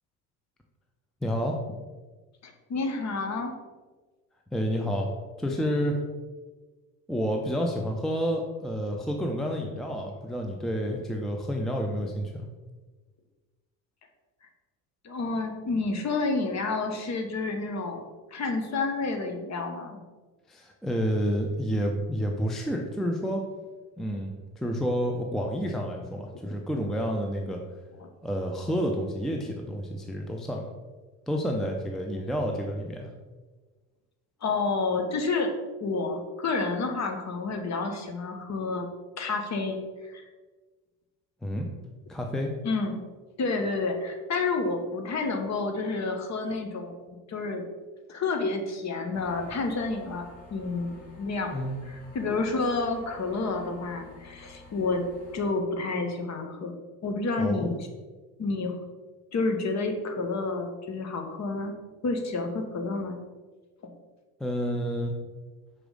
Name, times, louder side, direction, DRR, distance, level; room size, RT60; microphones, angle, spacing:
voice 1, 1.2-1.6 4.5-5.1 5.4-6.0 7.1-12.4 20.5-23.4 24.0-27.6 28.2-30.7 31.3-33.1 41.4-41.7 42.1-42.5 51.5-51.8 57.4-57.7 64.4-65.1, equal, ahead, 1 dB, 0.6 m, -29 dB
voice 2, 2.4-3.6 15.0-18.0 18.3-20.0 28.0-28.1 34.4-35.5 35.8-38.9 39.2-40.2 42.6-43.0 43.4-47.0 47.3-47.6 48.1-51.5 51.9-55.1 55.3-56.7 57.0-57.9 58.4-58.8 59.3-61.7 62.0-63.2 63.8-63.9, left 3 dB, 35° left, 4 dB, 1.1 m, -29 dB
sound 1, 49.1-55.5, left 3 dB, 60° left, 2.0 m, -50 dB
6.1 x 4.9 x 3.8 m, 1.3 s
hypercardioid pair, 65°, 49 cm